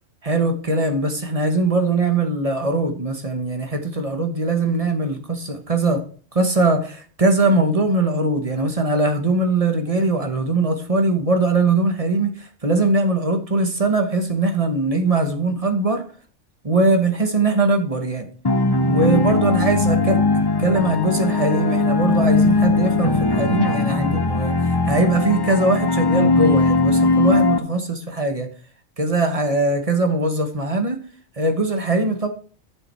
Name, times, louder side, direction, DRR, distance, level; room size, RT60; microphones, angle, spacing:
voice 1, 0.2-6.0 6.3-16.0 16.6-18.3 18.9-28.5 29.0-31.0 31.4-32.3, right 2 dB, 30° right, 6 dB, 1.1 m, -21 dB
sound 1, 18.4-27.6, left 3 dB, 25° left, 0.5 m, -19 dB
10.0 x 7.0 x 4.4 m, 0.44 s
omnidirectional pair, 1.4 m